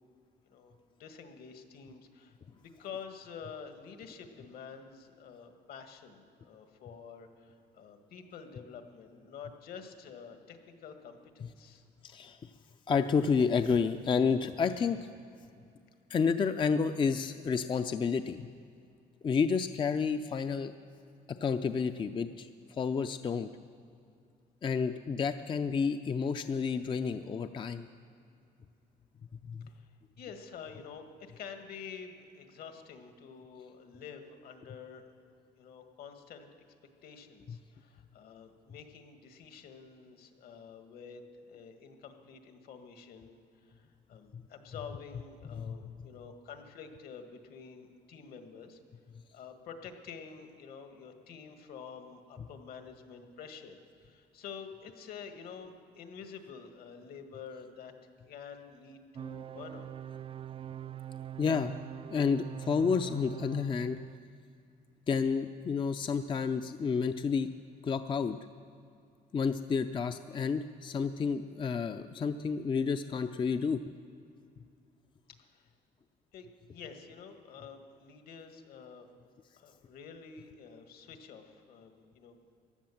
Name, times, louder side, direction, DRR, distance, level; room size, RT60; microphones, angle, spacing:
voice 1, 0.4-11.8 29.7-29.9 30.2-35.1 35.5-36.5 37.0-48.8 49.3-57.9 58.3-59.9 75.4-75.7 76.3-79.1 79.6-82.6, left 6 dB, 65° left, 6 dB, 1.7 m, -48 dB
voice 2, 12.0-12.5 12.9-15.1 16.1-18.5 19.2-20.7 21.3-23.5 24.6-27.9 29.5-29.7 44.3-44.4 45.5-45.9 61.4-61.7 62.1-64.0 65.1-67.5 67.8-68.4 69.3-73.8, left 5 dB, 30° left, 9 dB, 0.5 m, -30 dB
sound 1, 59.2-64.2, right 10 dB, 35° right, 0.3 m, -43 dB
15.5 x 10.5 x 7.2 m, 2.5 s
cardioid pair, 110°, 17 cm